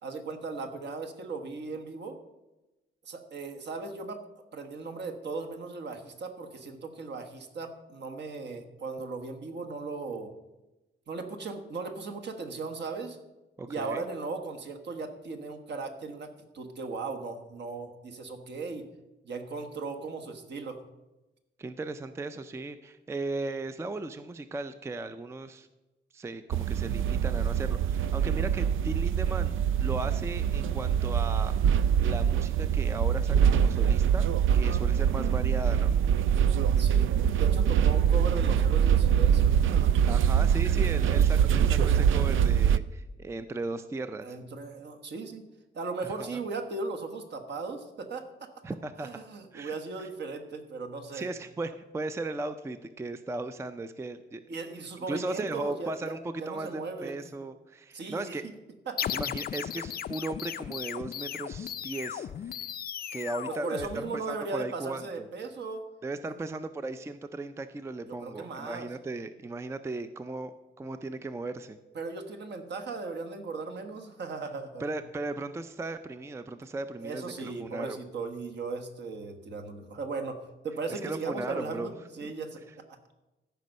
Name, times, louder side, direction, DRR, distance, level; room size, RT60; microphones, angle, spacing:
voice 1, 0.0-2.2 3.0-4.2 4.5-10.3 11.1-13.2 13.7-18.9 19.2-20.8 34.5-34.8 36.8-39.9 44.2-45.4 45.7-48.5 49.0-51.3 54.5-57.1 57.9-58.5 58.9-59.1 63.5-65.8 68.1-68.9 71.9-74.9 77.0-83.2, right 4 dB, 60° right, 5 dB, 1.3 m, -37 dB
voice 2, 13.6-14.0 21.6-25.7 26.1-31.6 32.0-34.3 34.5-35.9 40.1-44.4 46.0-46.4 48.6-49.1 49.5-49.7 51.1-54.4 55.1-56.2 56.5-58.4 59.1-62.6 63.1-65.3 66.0-71.8 74.8-78.0 80.9-81.9 82.2-82.3, right 2 dB, 15° right, 11 dB, 0.4 m, -37 dB
sound 1, 26.5-42.8, right 8 dB, 90° right, 0.4 m, -24 dB
sound 2, 59.0-64.4, left 9 dB, 50° left, 0.4 m, -36 dB
13.5 x 5.3 x 6.4 m, 1.1 s
wide cardioid pair, 150°, 20 cm